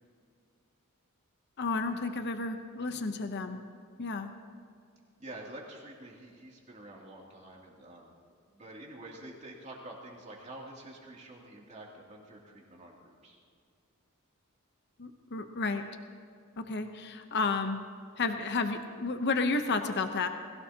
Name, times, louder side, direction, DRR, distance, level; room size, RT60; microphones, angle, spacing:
voice 1, 1.6-3.6 4.0-4.3 15.0-15.8 16.7-17.8 18.2-20.3, left 3 dB, 50° left, 7 dB, 0.8 m, -31 dB
voice 2, 5.2-8.2 8.5-13.4, right 1 dB, 35° right, -3 dB, 2.8 m, -48 dB
21.0 x 16.0 x 2.9 m, 2.3 s
head